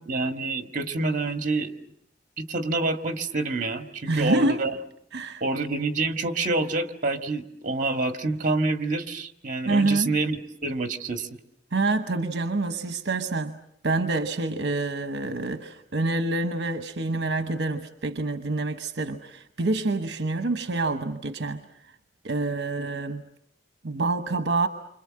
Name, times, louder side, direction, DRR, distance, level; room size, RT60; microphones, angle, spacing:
voice 1, 0.0-1.7 2.4-4.8 5.4-11.3, right 3 dB, 45° right, 7 dB, 1.7 m, -27 dB
voice 2, 4.1-4.6 5.1-5.4 9.7-10.1 11.7-13.6 13.8-21.6 22.2-23.2 23.8-24.7, right 2 dB, 70° right, 8 dB, 1.0 m, -27 dB
28.5 x 26.0 x 7.6 m, 0.73 s
head